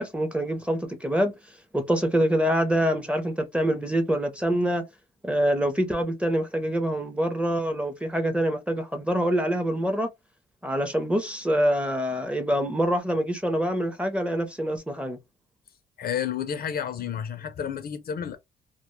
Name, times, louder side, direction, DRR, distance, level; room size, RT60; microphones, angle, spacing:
voice 1, 0.0-1.3 1.7-4.8 5.2-10.1 10.6-15.2, equal, 5° right, 0.6 m, -25 dB
voice 2, 16.0-18.4, left 8 dB, 50° left, 0.5 m, -31 dB
2.1 x 2.0 x 3.0 m
cardioid pair, 90°, 20 cm